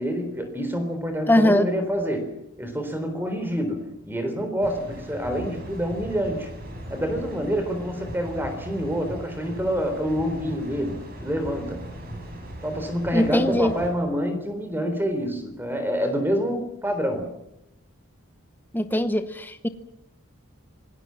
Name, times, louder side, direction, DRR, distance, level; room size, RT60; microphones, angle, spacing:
voice 1, 0.0-6.5 6.9-11.9 12.6-17.4, equal, 10° right, 7 dB, 3.6 m, -27 dB
voice 2, 1.3-1.7 13.1-13.7 18.7-19.7, left 1 dB, 10° left, 10 dB, 0.9 m, -21 dB
sound 1, 4.6-13.9, equal, 45° right, 7.5 m, -38 dB
25.5 x 19.0 x 7.5 m, 0.80 s
head